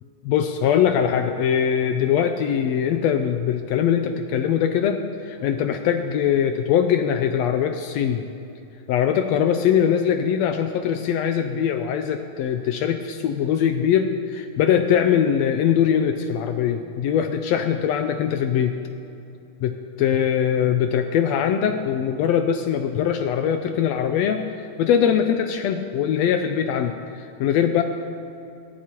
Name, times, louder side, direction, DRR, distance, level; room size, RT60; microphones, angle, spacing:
voice 1, 0.2-8.2 8.9-18.8 19.6-27.8, left 8 dB, 80° left, 7 dB, 1.6 m, -22 dB
18.5 x 13.0 x 3.0 m, 2.7 s
omnidirectional pair, 3.4 m